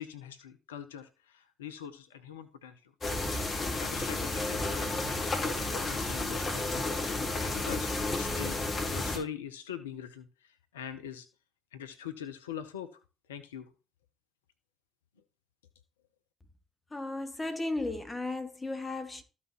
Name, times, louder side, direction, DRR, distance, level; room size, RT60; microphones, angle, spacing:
voice 1, 0.0-2.9 3.8-6.8 7.4-11.3 11.7-12.9 13.3-13.7, left 9 dB, 80° left, 0.6 m, -43 dB
sound 1, 3.0-9.2, left 2 dB, 35° left, 3.7 m, -32 dB
voice 2, 16.9-19.2, left 2 dB, 20° left, 2.0 m, -35 dB
13.5 x 5.7 x 3.0 m
figure-of-eight pair, 50°, 0 cm